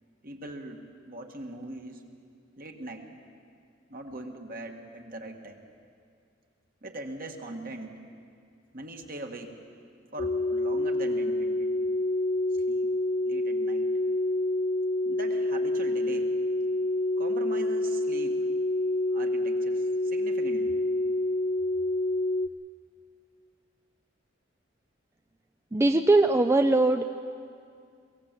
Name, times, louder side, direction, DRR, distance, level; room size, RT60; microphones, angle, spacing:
voice 1, 0.2-2.0 2.6-3.1 3.9-5.6 6.8-8.0 8.7-9.6 10.1-11.7 12.7-12.9 13.3-13.9 15.1-16.3 17.2-18.5 19.1-20.7, right 2 dB, 50° right, 3 dB, 1.8 m, -41 dB
sound 1, 10.2-22.5, left 1 dB, 50° left, 0.6 m, -27 dB
voice 2, 25.7-27.1, right 2 dB, 15° right, 7 dB, 0.4 m, -21 dB
22.5 x 17.0 x 7.6 m, 2.3 s
head